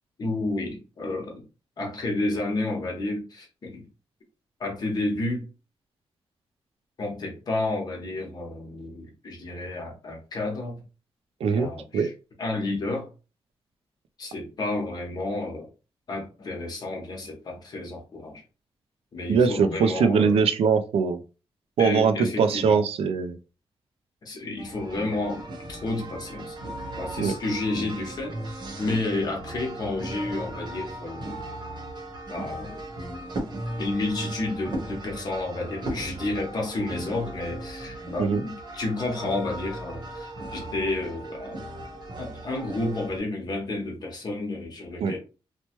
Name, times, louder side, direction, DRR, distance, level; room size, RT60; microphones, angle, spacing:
voice 1, 0.2-1.5 1.8-3.9 4.6-5.5 7.0-10.8 11.5-12.1 12.4-13.1 14.2-15.7 16.1-18.4 19.1-20.4 21.8-22.9 24.2-26.6 27.0-31.4 32.3-32.8 33.8-41.7 42.2-45.2, left 2 dB, 45° left, 0.9 m, -31 dB
voice 2, 19.3-21.2 21.8-23.4 27.2-27.3 38.2-38.4 45.0-45.1, right 5 dB, 80° right, 0.4 m, -22 dB
sound 1, 24.6-43.2, right 1 dB, 45° right, 0.9 m, -37 dB
2.9 x 2.1 x 2.9 m
wide cardioid pair, 170°, 10 cm